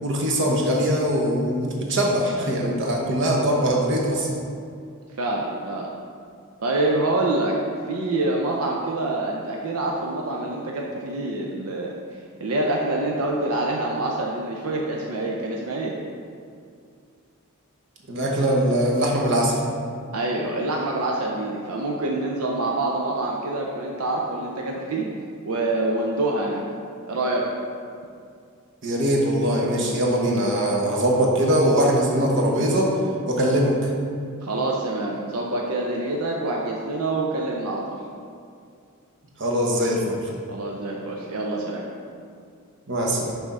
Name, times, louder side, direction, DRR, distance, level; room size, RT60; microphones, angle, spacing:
voice 1, 0.0-4.4 18.1-19.5 28.8-32.9 33.3-33.7 39.4-40.3 42.9-43.3, right 1 dB, 55° right, -2 dB, 1.0 m, -22 dB
voice 2, 5.2-5.9 6.6-7.6 7.9-11.9 12.4-15.9 20.1-25.1 25.5-26.6 27.1-27.5 34.4-38.0 40.5-41.8, right 2 dB, 85° right, -1 dB, 0.6 m, -26 dB
6.0 x 3.5 x 5.5 m, 2.3 s
head